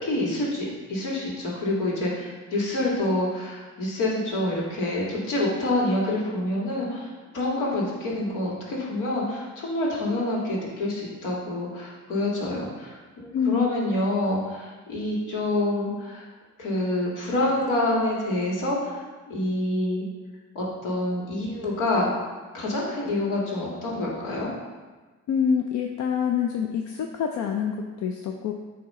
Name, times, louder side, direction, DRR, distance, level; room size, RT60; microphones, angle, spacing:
voice 1, 0.0-16.2 16.6-20.0 20.6-22.1 22.5-24.5, left 1 dB, 85° left, -4 dB, 1.9 m, -27 dB
voice 2, 13.3-13.8 25.3-28.5, left 7 dB, 70° left, 3 dB, 0.5 m, -26 dB
8.6 x 2.9 x 4.2 m, 1.3 s
cardioid pair, 90°, 30 cm